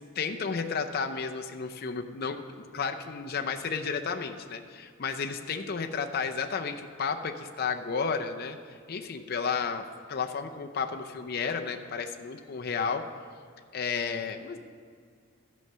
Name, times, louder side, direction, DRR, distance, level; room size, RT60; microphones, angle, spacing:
voice 1, 0.2-2.4 2.7-13.1 13.7-14.6, left 5 dB, 45° left, 5 dB, 0.5 m, -32 dB
13.0 x 6.3 x 5.5 m, 2.2 s
head